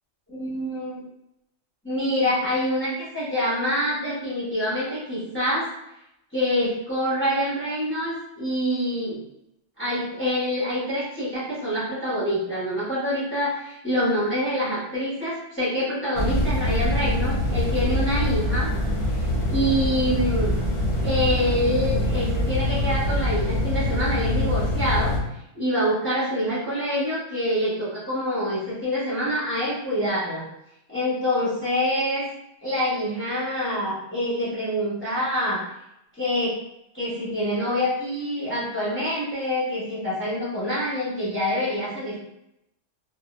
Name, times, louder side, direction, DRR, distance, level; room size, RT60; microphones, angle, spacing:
voice 1, 0.3-1.0 1.8-5.7 6.3-9.2 9.8-18.7 19.1-19.2 19.5-20.5 21.0-25.2 25.5-30.4 30.9-32.3 32.6-35.7 36.2-36.6 36.9-42.2, equal, 10° left, -9 dB, 0.7 m, -26 dB
sound 1, 16.1-25.2, left 1 dB, 60° left, 0.8 m, -24 dB
2.3 x 2.1 x 2.9 m, 0.83 s
omnidirectional pair, 1.3 m